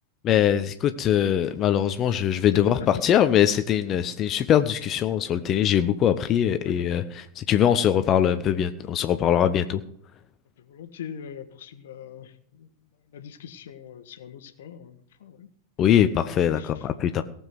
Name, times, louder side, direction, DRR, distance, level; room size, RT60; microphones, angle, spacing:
voice 1, 0.2-9.8 15.8-17.2, left 10 dB, 30° left, 10 dB, 0.8 m, -22 dB
voice 2, 2.1-2.9 6.6-7.0 10.6-15.5 16.0-16.1 16.5-16.9, left 8 dB, 60° left, 10 dB, 1.4 m, -42 dB
18.5 x 7.3 x 6.1 m, 0.68 s
figure-of-eight pair, 90°, 0 cm